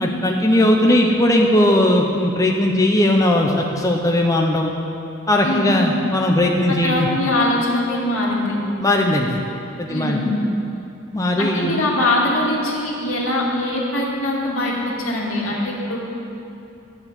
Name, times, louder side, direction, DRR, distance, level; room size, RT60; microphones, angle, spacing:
voice 1, 0.0-4.7 5.3-7.1 8.8-9.4 9.8-10.2 11.1-11.8, left 1 dB, 15° left, 1 dB, 0.8 m, -18 dB
voice 2, 5.4-5.7 6.7-8.5 9.9-10.4 11.4-16.0, left 1 dB, 80° left, -3 dB, 2.5 m, -22 dB
12.0 x 7.2 x 8.0 m, 2.9 s
head